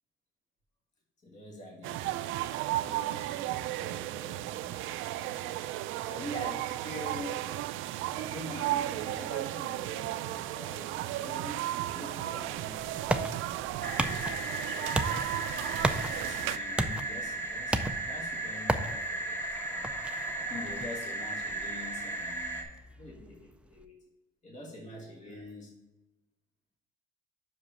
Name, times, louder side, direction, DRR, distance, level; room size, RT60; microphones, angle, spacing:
voice 1, 1.2-2.4 2.8-7.3 8.1-14.3 14.6-15.2 15.6-19.9 20.3-22.6 23.0-23.9 24.4-25.7, left 1 dB, 35° left, -1 dB, 1.6 m, -46 dB
sound 1, 1.8-16.6, right 14 dB, 80° right, 0.4 m, -34 dB
sound 2, 12.4-23.8, right 1 dB, 5° right, 0.3 m, -36 dB
sound 3, 13.8-22.6, right 2 dB, 10° left, 1.4 m, -36 dB
5.8 x 5.1 x 5.4 m, 1.1 s
cardioid pair, 160°, 20 cm